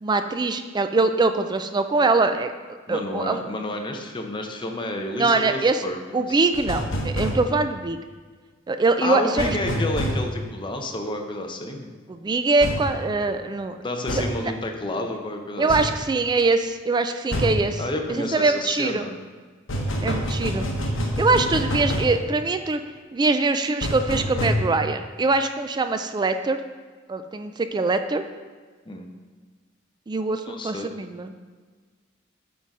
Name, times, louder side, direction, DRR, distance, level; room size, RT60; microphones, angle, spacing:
voice 1, 0.0-2.5 2.9-3.4 5.2-5.8 6.1-8.0 8.7-9.5 12.1-13.8 15.6-17.8 18.1-19.1 20.0-20.7 21.2-22.8 23.1-26.6 27.1-28.3 30.1-31.4, right 3 dB, 20° right, 9 dB, 0.3 m, -23 dB
voice 2, 2.9-6.4 9.0-11.9 13.8-15.9 17.8-19.1 28.9-29.1 30.5-30.9, left 1 dB, 25° left, 3 dB, 0.8 m, -30 dB
sound 1, 6.5-7.4 9.4-10.2 12.6-12.9 14.1-14.3 15.7-15.9 17.3-17.6 19.7-22.1 23.8-24.5, equal, 75° left, 1.0 m, -26 dB
8.3 x 3.9 x 4.7 m, 1.5 s
head